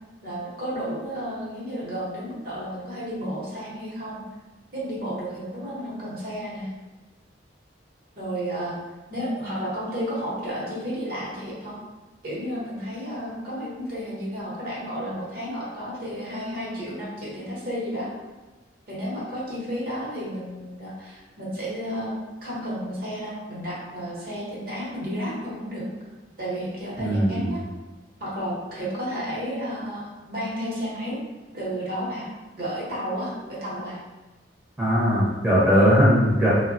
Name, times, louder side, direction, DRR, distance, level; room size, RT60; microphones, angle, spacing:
voice 1, 0.2-4.2 4.7-6.7 8.2-8.8 9.1-11.8 12.2-18.1 18.9-22.1 22.4-25.8 26.4-27.6 28.2-31.2 31.5-32.3 32.6-34.0 35.7-36.0, equal, 50° right, -6 dB, 0.8 m, -32 dB
voice 2, 27.0-27.5 34.8-36.5, equal, 5° right, -9 dB, 0.6 m, -19 dB
3.2 x 2.1 x 2.5 m, 1.2 s
head